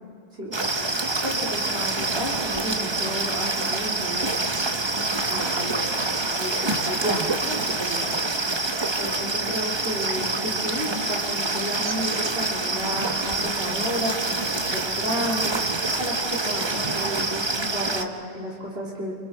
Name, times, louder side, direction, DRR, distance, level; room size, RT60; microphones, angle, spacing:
voice 1, 0.4-4.4 5.3-6.0 6.4-8.0 9.0-19.1, equal, 70° right, -4 dB, 3.9 m, -32 dB
sound 1, 0.5-18.0, right 3 dB, 25° right, 0.9 m, -26 dB
29.0 x 28.0 x 4.7 m, 2.2 s
omnidirectional pair, 1.1 m